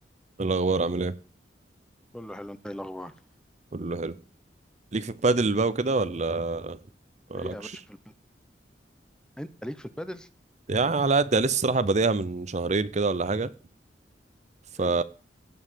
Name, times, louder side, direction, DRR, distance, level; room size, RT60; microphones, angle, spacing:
voice 1, 0.4-1.1 3.7-4.1 4.9-6.8 7.3-7.8 10.7-13.5 14.8-15.0, right 3 dB, 40° right, 0.7 m, -25 dB
voice 2, 2.1-3.1 7.3-7.7 9.4-10.3 14.8-15.0, equal, 5° left, 0.8 m, -38 dB
16.5 x 5.6 x 7.5 m
head